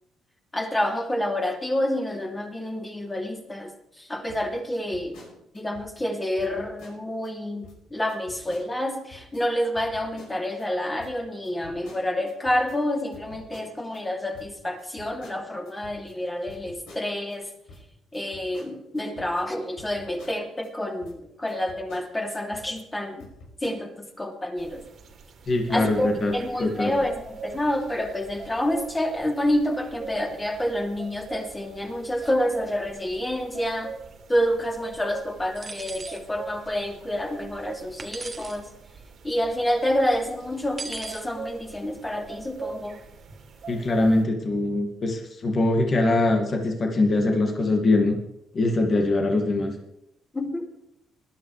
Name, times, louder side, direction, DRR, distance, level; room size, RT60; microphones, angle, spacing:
voice 1, 0.5-3.7 4.0-5.2 5.5-17.5 18.1-23.3 23.6-24.8 25.7-33.9 34.3-38.7 39.2-43.0 50.3-50.7, left 1 dB, 15° left, 1 dB, 2.9 m, -28 dB
sound 1, 4.3-6.1 6.4-7.3 7.6-7.8 8.1-9.4 9.8-10.7 11.0-14.0 14.3-17.4 17.7-20.7 21.0-21.2 21.5-22.9 23.2-24.1, left 2 dB, 90° left, 6.0 m, -49 dB
sound 2, 24.6-44.2, right 5 dB, 65° right, 2.2 m, -42 dB
voice 2, 25.5-26.3 26.6-26.9 43.7-48.1 48.5-49.8, left 2 dB, 40° left, 2 dB, 2.0 m, -22 dB
sound 3, 35.6-36.2 38.0-38.6 40.8-41.3, right 4 dB, 30° right, 1.3 m, -38 dB
20.0 x 11.5 x 3.3 m, 0.83 s
cardioid pair, 90°, 0 cm